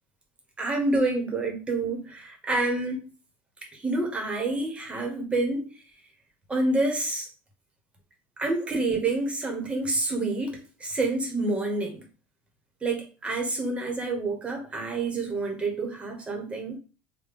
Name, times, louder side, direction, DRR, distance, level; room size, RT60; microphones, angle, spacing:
voice 1, 0.6-3.0 3.7-5.7 6.5-7.3 8.4-12.0 12.8-16.8, right 2 dB, 20° right, 1.1 m, -28 dB
3.4 x 2.2 x 3.5 m
supercardioid pair, 115°, 6 cm